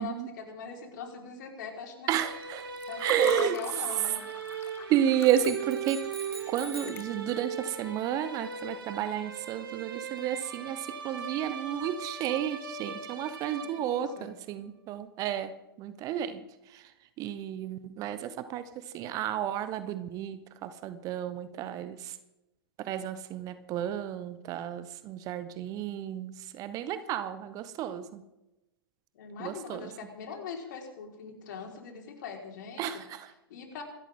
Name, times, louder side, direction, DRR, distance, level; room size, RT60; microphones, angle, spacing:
voice 1, 0.0-2.1 2.9-4.2 13.6-14.4 29.1-33.0 33.5-33.8, left 6 dB, 50° left, 2 dB, 4.8 m, -42 dB
voice 2, 2.1-2.7 3.0-3.6 4.9-6.0 6.5-16.4 16.7-16.8 17.2-18.6 18.9-22.1 22.8-28.2 29.4-29.8 32.8-33.3, right 10 dB, 30° right, 13 dB, 1.1 m, -31 dB
sound 1, 2.1-14.2, right 6 dB, 65° right, 2.8 m, -40 dB
Water / Fill (with liquid), 2.4-7.6, left 7 dB, 20° left, 1.6 m, -43 dB
sound 2, 5.2-7.1, right 1 dB, 80° right, 6.9 m, -44 dB
26.0 x 13.5 x 3.8 m, 0.94 s
figure-of-eight pair, 110°, 12 cm